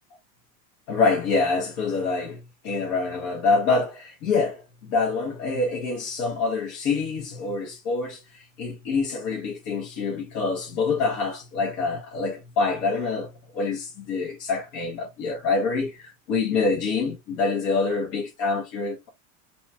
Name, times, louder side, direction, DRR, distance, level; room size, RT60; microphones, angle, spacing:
voice 1, 0.9-19.1, left 4 dB, 85° left, 1.1 m, -26 dB
3.0 x 2.3 x 2.7 m
supercardioid pair, 160°, 40 cm